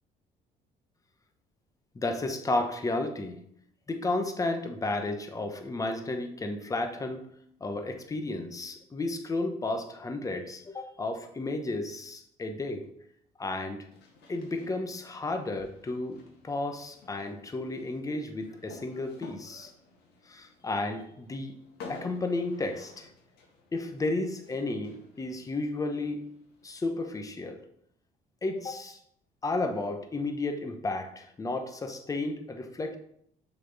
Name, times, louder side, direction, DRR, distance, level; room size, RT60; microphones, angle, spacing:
voice 1, 1.9-3.4 3.9-7.2 7.6-12.9 13.4-13.9 14.3-19.7 20.3-21.5 21.9-23.1 23.7-26.3 26.6-27.6 28.4-29.0 29.4-33.0, left 2 dB, 20° left, 6 dB, 0.9 m, -33 dB
sound 1, 13.9-26.8, left 4 dB, 75° left, 1.6 m, -52 dB
6.4 x 4.2 x 4.0 m, 0.69 s
cardioid pair, 110°, 17 cm